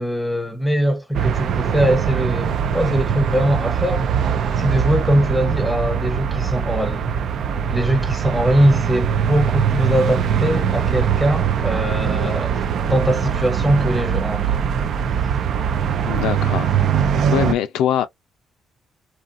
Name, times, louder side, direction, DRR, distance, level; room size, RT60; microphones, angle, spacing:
voice 1, 0.0-4.1 4.6-7.1 7.7-14.7, equal, ahead, 0.8 m, -21 dB
sound 1, 1.1-17.5, right 7 dB, 65° right, 0.4 m, -21 dB
voice 2, 16.1-16.8 17.3-18.1, left 10 dB, 90° left, 0.5 m, -22 dB
2.8 x 2.5 x 2.4 m
cardioid pair, 90°, 0 cm